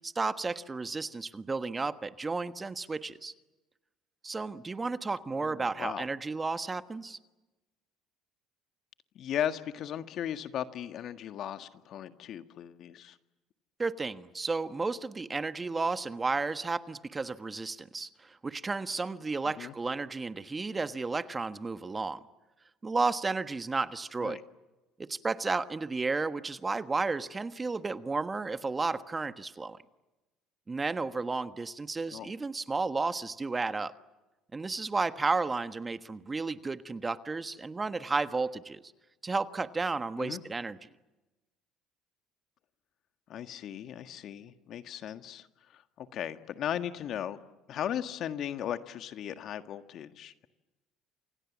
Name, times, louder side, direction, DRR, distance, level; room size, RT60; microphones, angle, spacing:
voice 1, 0.0-3.3 4.2-7.2 13.8-22.2 22.8-24.4 25.0-29.8 30.7-33.9 34.5-38.8 39.2-40.8, right 3 dB, 25° right, 11 dB, 1.4 m, -32 dB
voice 2, 5.3-6.1 9.1-13.2 19.6-19.7 24.2-24.4 32.1-32.3 40.2-40.4 43.3-45.5 45.7-47.4 47.7-50.5, left 10 dB, 55° left, 9 dB, 1.7 m, -37 dB
29.0 x 27.0 x 7.3 m, 1.1 s
hypercardioid pair, 70°, 0 cm